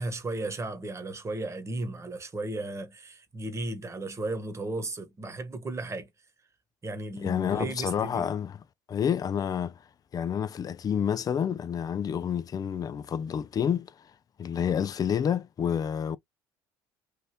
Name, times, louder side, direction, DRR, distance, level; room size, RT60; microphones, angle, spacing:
voice 1, 0.0-6.1 6.8-8.3, right 2 dB, 25° right, 1.2 m, -35 dB
voice 2, 7.2-8.5 8.9-9.8 10.1-13.9 14.4-16.2, left 8 dB, 35° left, 0.4 m, -29 dB
3.3 x 2.6 x 2.7 m
hypercardioid pair, 70°, 11 cm